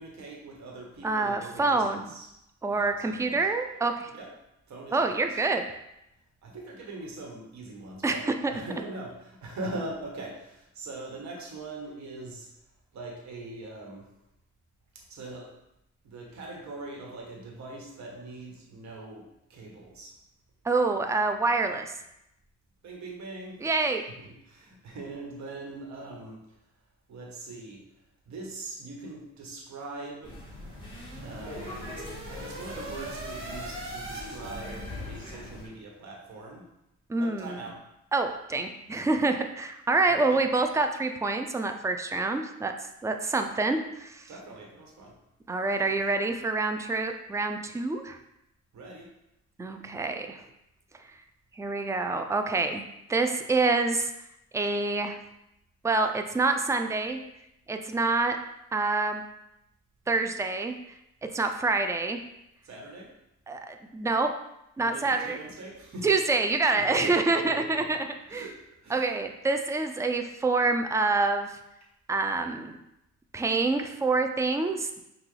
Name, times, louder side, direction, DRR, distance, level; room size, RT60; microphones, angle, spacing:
voice 1, 0.0-2.3 2.7-3.4 4.1-4.3 4.7-5.4 6.4-12.5 12.9-14.1 14.9-15.5 16.0-20.1 22.8-23.6 24.2-26.4 27.1-27.8 28.3-30.4 31.2-36.6 37.2-37.8 40.1-40.4 44.3-45.1 45.9-46.0 48.7-49.1 62.6-63.1 64.8-66.1 66.7-68.0 68.3-69.0, right 2 dB, 65° right, -1 dB, 1.3 m, -42 dB
voice 2, 1.0-2.1 2.6-4.1 4.9-5.6 8.0-8.5 20.6-21.9 23.6-24.0 37.1-37.6 38.1-42.7 43.0-44.2 45.5-48.2 49.6-50.4 51.6-52.8 53.1-54.1 54.5-55.2 55.8-57.2 57.7-58.4 58.7-59.2 60.1-60.8 61.3-62.2 63.5-64.3 64.8-65.4 66.0-68.5 68.9-71.5 72.1-72.7 73.3-75.0, right 3 dB, 10° right, 6 dB, 0.3 m, -27 dB
sound 1, 30.2-35.7, left 1 dB, 15° left, 1.6 m, -41 dB
sound 2, 30.4-35.4, right 1 dB, 45° right, 1.1 m, -42 dB
5.8 x 2.4 x 3.3 m, 0.84 s
cardioid pair, 90°, 30 cm